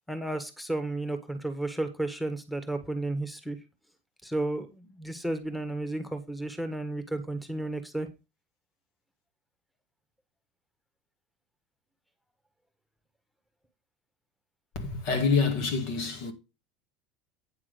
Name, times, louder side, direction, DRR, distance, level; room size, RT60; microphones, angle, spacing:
voice 1, 0.0-3.6 4.2-8.1, right 2 dB, 5° left, 1.6 m, -33 dB
voice 2, 14.8-16.3, left 4 dB, 65° left, 2.1 m, -27 dB
9.2 x 3.6 x 6.6 m
hypercardioid pair, 90°, 0 cm